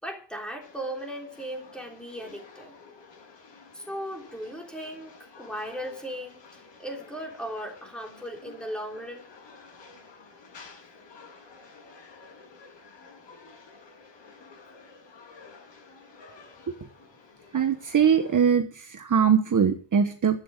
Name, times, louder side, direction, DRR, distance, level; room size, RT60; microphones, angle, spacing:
voice 1, 0.0-2.8 3.7-6.4 6.8-9.3, equal, ahead, 1 dB, 3.6 m, -37 dB
sound 1, 0.6-18.5, left 4 dB, 80° left, 7.9 m, -51 dB
voice 2, 17.5-20.4, right 7 dB, 45° right, 7 dB, 1.1 m, -22 dB
12.0 x 8.9 x 7.6 m, 0.43 s
wide cardioid pair, 150°, 43 cm